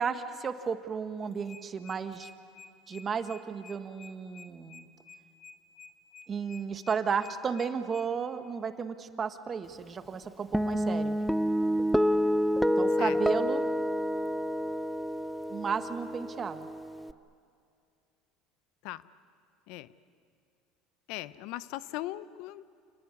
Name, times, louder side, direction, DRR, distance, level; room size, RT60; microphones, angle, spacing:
voice 1, 0.0-2.3 2.9-4.9 6.3-11.2 12.8-13.7 15.5-16.7, right 6 dB, 30° right, 9 dB, 1.4 m, -33 dB
sound 1, 1.2-8.1, left 5 dB, 40° left, 2.0 m, -51 dB
Guitar, 10.5-17.1, equal, ahead, 0.6 m, -28 dB
voice 2, 21.1-22.7, left 16 dB, 70° left, 17 dB, 0.6 m, -39 dB
28.0 x 19.5 x 9.7 m, 2.4 s
supercardioid pair, 110°, 0 cm